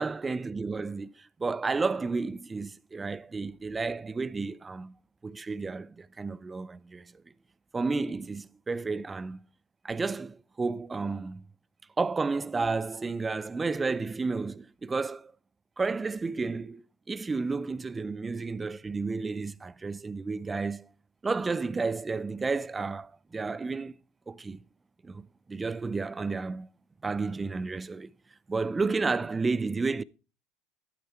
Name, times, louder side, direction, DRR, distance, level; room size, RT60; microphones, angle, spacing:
voice 1, 0.0-4.9 5.2-7.1 7.7-9.4 9.8-11.4 12.0-15.3 15.8-20.9 21.2-23.9 24.3-24.6 25.0-26.7 27.0-28.1 28.5-30.0, right 4 dB, 20° right, 0.5 m, -31 dB
13.0 x 8.9 x 4.4 m
supercardioid pair, 95°, 0 cm